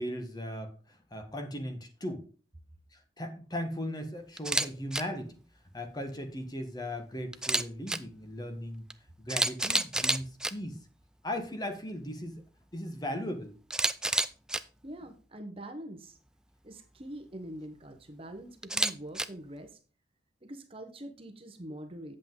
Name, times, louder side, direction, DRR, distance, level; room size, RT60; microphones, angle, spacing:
voice 1, 0.0-2.2 2.9-5.4 5.7-8.8 9.2-10.8 11.2-12.4 12.7-13.5, equal, 20° left, 6 dB, 1.3 m, -37 dB
Camera, 4.4-4.7 4.9-5.0 7.3-8.0 8.9-9.0 9.3-10.5 13.7-14.6 18.6-19.2, right 2 dB, 5° right, 0.3 m, -28 dB
voice 2, 14.8-16.2 16.6-19.8 20.4-22.2, right 1 dB, 30° right, 6 dB, 1.0 m, -44 dB
8.3 x 7.7 x 3.8 m, 0.36 s
head